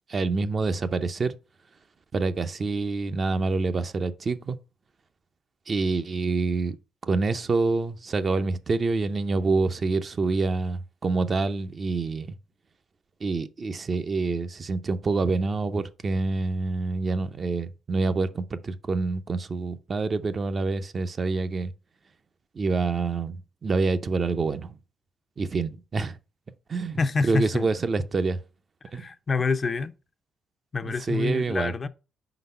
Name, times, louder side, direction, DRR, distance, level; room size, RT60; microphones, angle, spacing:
voice 1, 0.1-1.4 2.1-4.6 5.7-6.8 7.1-12.4 13.2-21.7 22.6-23.4 23.6-24.7 25.4-26.2 26.7-27.0 27.2-28.4 28.9-29.1 30.8-31.7, right 3 dB, 40° right, 0.5 m, -26 dB
voice 2, 27.0-27.7 28.9-29.9 30.7-31.9, left 4 dB, 35° left, 0.4 m, -27 dB
5.1 x 4.0 x 5.4 m
cardioid pair, 90°, 0 cm